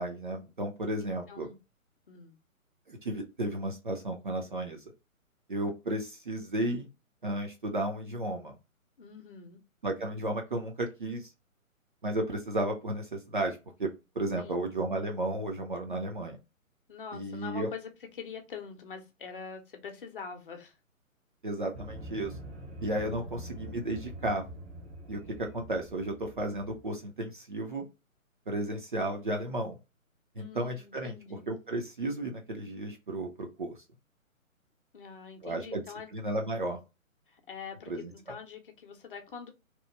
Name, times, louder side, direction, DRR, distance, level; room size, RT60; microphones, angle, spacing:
voice 1, 0.0-1.5 2.9-4.8 5.5-6.9 7.2-8.6 9.8-11.3 12.0-13.9 14.2-16.4 17.1-17.7 21.4-22.3 22.8-24.4 25.1-27.9 28.5-29.8 30.4-31.2 31.5-33.7 35.4-35.8 36.1-36.8 37.9-38.1, right 1 dB, 40° right, 1 dB, 0.5 m, -33 dB
voice 2, 1.0-1.6 2.1-2.4 9.0-9.6 14.4-14.7 16.9-20.8 30.4-31.5 34.9-36.1 37.3-39.5, left 6 dB, 40° left, 5 dB, 0.7 m, -44 dB
sound 1, 21.7-26.8, equal, 55° right, 0.9 m, -45 dB
2.9 x 2.0 x 3.1 m, 0.26 s
figure-of-eight pair, 135°, 42 cm